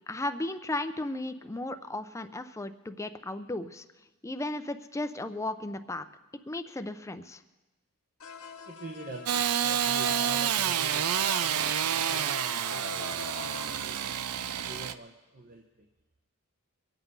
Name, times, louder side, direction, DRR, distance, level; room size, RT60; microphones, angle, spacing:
voice 1, 0.1-3.8 4.2-6.1 6.5-7.4, left 2 dB, 15° left, 9 dB, 0.6 m, -35 dB
sound 1, 8.2-13.8, left 6 dB, 70° left, 0.8 m, -44 dB
voice 2, 8.7-15.6, right 1 dB, 40° right, 2 dB, 0.9 m, -46 dB
Engine starting / Sawing, 9.3-14.9, right 9 dB, 90° right, 0.5 m, -29 dB
23.0 x 8.1 x 5.4 m, 1.1 s
head